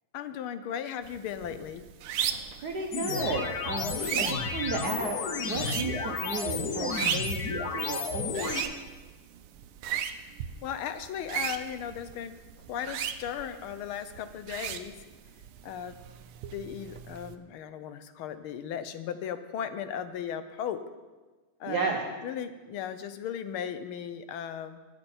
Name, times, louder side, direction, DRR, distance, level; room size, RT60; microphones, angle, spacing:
voice 1, 0.1-1.8 10.1-10.2 10.6-12.4 12.7-14.9 15.6-15.9 16.5-20.8 21.6-21.9 22.2-24.8, left 9 dB, 75° left, 11 dB, 1.6 m, -36 dB
sound 1, 1.0-17.4, right 9 dB, 80° right, 1.6 m, -38 dB
voice 2, 2.6-8.6 21.7-22.0, right 4 dB, 55° right, 1 dB, 1.3 m, -34 dB
sound 2, 2.9-8.6, left 5 dB, 55° left, 1.3 m, -32 dB
21.0 x 7.7 x 4.4 m, 1.3 s
omnidirectional pair, 2.4 m